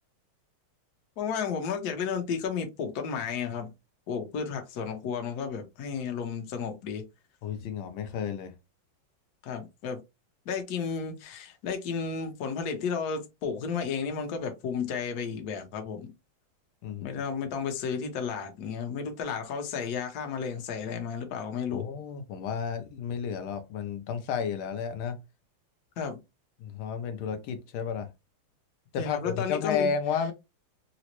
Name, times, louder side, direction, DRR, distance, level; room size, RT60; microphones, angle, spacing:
voice 1, 1.2-3.7 4.1-7.0 9.4-10.0 10.5-16.1 17.0-21.9 26.0-26.2 29.0-29.9, left 6 dB, 60° left, 1.1 m, -33 dB
voice 2, 7.4-8.5 16.8-17.2 21.7-25.2 26.6-28.1 28.9-30.3, left 6 dB, 80° left, 1.5 m, -32 dB
3.9 x 2.1 x 2.9 m
omnidirectional pair, 2.3 m